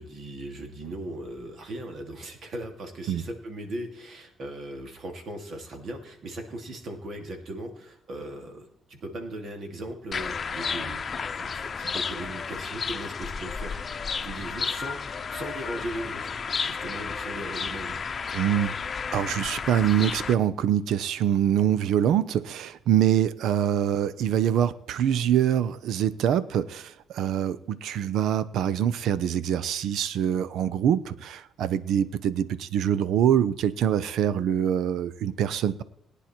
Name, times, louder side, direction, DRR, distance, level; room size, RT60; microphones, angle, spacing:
voice 1, 0.0-13.7 14.2-16.4 16.6-18.0, right 1 dB, 65° right, 5 dB, 2.7 m, -38 dB
sound 1, 10.1-20.3, left 5 dB, 40° left, 0.8 m, -32 dB
voice 2, 18.3-18.7 19.1-35.8, right 9 dB, 80° right, 16 dB, 0.6 m, -24 dB
18.0 x 9.9 x 4.5 m, 0.76 s
cardioid pair, 90°, 0 cm